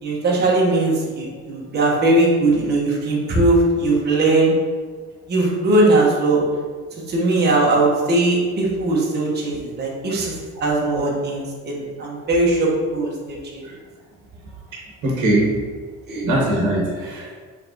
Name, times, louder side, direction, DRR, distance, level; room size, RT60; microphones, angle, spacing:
voice 1, 0.0-4.5 5.3-6.4 7.1-10.3 10.6-13.6 16.1-16.3, right 2 dB, 35° right, -3 dB, 0.9 m, -19 dB
voice 2, 15.0-15.5 16.2-17.4, right 1 dB, 80° right, -3 dB, 1.0 m, -20 dB
4.8 x 3.3 x 2.7 m, 1.5 s
cardioid pair, 180°, 30 cm